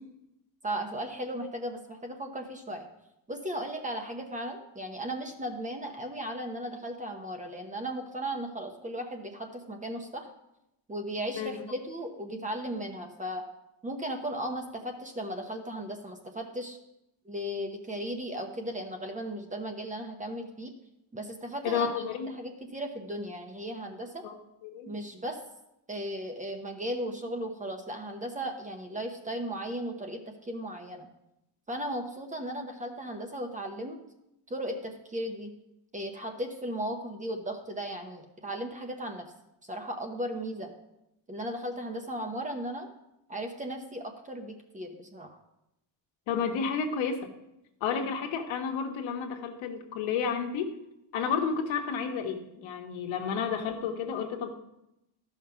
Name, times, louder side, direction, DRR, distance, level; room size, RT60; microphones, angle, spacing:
voice 1, 0.6-2.9 3.3-10.3 10.9-13.4 13.8-16.8 17.2-20.7 21.1-22.0 22.3-24.2 24.9-25.4 25.9-31.1 31.7-34.0 34.5-35.5 35.9-39.2 39.7-40.7 41.3-42.9 43.3-45.4, right 1 dB, 15° right, 4 dB, 0.9 m, -36 dB
voice 2, 21.6-22.3 24.2-24.3 24.6-24.9 46.3-47.3 47.8-50.7 51.1-54.5, left 6 dB, 75° left, 3 dB, 1.5 m, -31 dB
12.5 x 5.8 x 5.7 m, 0.86 s
cardioid pair, 165°, 47 cm